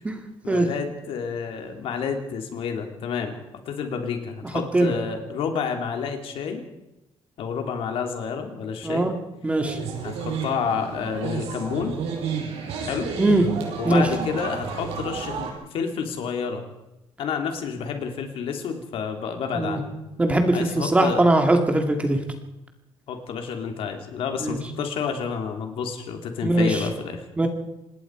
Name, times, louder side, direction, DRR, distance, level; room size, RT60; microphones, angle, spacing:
voice 1, 0.4-3.4 3.6-6.6 7.4-9.1 10.0-11.9 12.8-13.1 13.8-16.6 17.2-19.9 20.5-21.2 23.1-27.2, left 6 dB, 65° left, 4 dB, 3.3 m, -29 dB
voice 2, 8.8-9.1 9.4-9.8 13.2-13.5 13.9-14.1 19.5-19.8 20.2-22.2 24.4-24.6 26.4-26.8 27.4-27.5, right 2 dB, 10° right, 5 dB, 2.0 m, -20 dB
sound 1, 9.6-15.5, right 6 dB, 85° right, 6.7 m, -31 dB
26.5 x 20.0 x 4.9 m, 0.93 s
cardioid pair, 180°, 10 cm